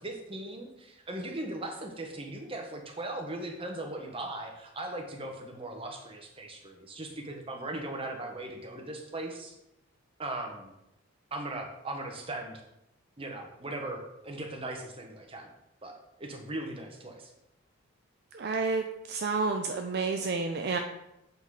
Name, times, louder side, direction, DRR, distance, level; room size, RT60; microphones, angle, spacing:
voice 1, 0.0-9.6 10.2-10.7 11.3-12.6 13.2-15.5 15.8-17.3, right 2 dB, 25° right, 3 dB, 1.0 m, -38 dB
voice 2, 18.3-20.8, right 4 dB, 50° right, 4 dB, 0.4 m, -30 dB
8.0 x 4.0 x 4.8 m, 0.88 s
head